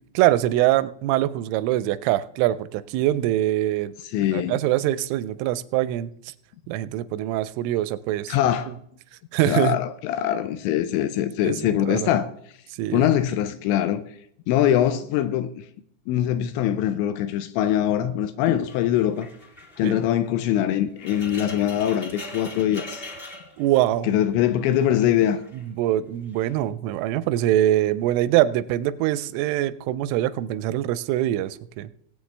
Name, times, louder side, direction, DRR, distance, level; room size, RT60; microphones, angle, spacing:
voice 1, 0.1-3.9 4.3-6.3 6.7-8.4 8.7-8.8 9.3-9.8 11.4-12.1 12.8-13.1 19.8-20.0 23.6-24.1 25.5-31.9, right 13 dB, 85° right, 3.1 m, -23 dB
voice 2, 4.0-4.6 8.3-8.7 9.5-12.3 12.9-14.0 14.5-15.7 16.1-19.3 19.8-23.1 24.0-25.4, left 11 dB, 85° left, 2.7 m, -23 dB
sound 1, 18.6-24.2 24.5-25.7 26.3-26.6, left 2 dB, 25° left, 1.1 m, -42 dB
20.5 x 8.5 x 3.3 m
omnidirectional pair, 5.6 m